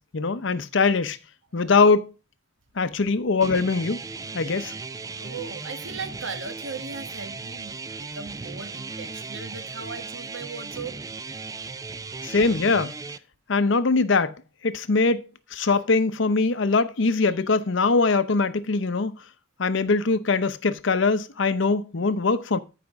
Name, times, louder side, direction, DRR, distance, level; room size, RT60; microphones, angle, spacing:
voice 1, 0.1-1.2 1.5-2.1 2.8-4.0 4.3-4.7 12.2-12.9 13.5-14.4 14.6-15.2 15.5-19.1 19.6-22.6, left 4 dB, 65° left, 0.7 m, -22 dB
sound 1, 3.4-13.2, right 4 dB, 15° right, 0.4 m, -37 dB
voice 2, 5.2-7.8 8.1-10.9, right 4 dB, 80° right, 1.6 m, -37 dB
14.0 x 5.1 x 3.5 m
head